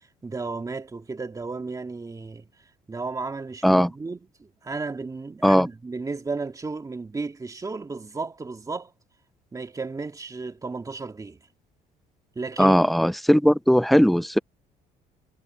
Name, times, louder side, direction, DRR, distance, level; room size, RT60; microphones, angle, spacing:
voice 1, 0.2-2.5 2.9-8.9 9.5-11.4 12.4-12.8, right 4 dB, 20° right, 2.2 m, -33 dB
voice 2, 12.6-14.4, equal, ahead, 0.6 m, -18 dB
cardioid pair, 110°, 17 cm